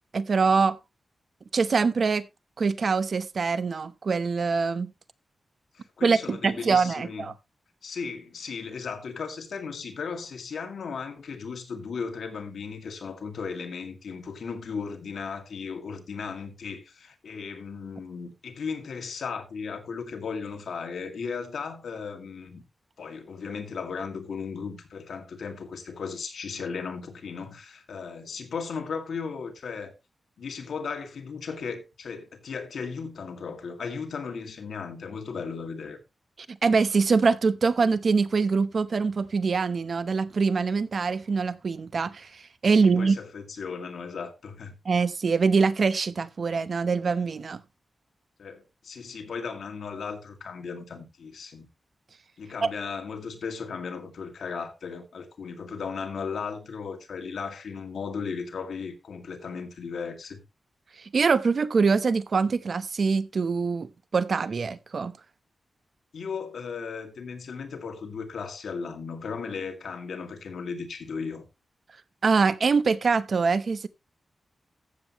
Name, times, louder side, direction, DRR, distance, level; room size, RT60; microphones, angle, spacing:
voice 1, 0.1-0.8 1.5-2.3 2.6-4.9 6.0-7.3 36.5-43.2 44.9-47.6 52.6-52.7 61.1-65.1 72.2-73.9, right 4 dB, 55° right, 0.8 m, -24 dB
voice 2, 5.7-7.3 7.8-22.6 23.0-29.9 30.4-36.0 42.7-44.7 48.4-51.7 52.4-60.4 66.1-71.5, left 5 dB, 85° left, 2.1 m, -36 dB
14.5 x 7.8 x 3.0 m
wide cardioid pair, 105°, 0 cm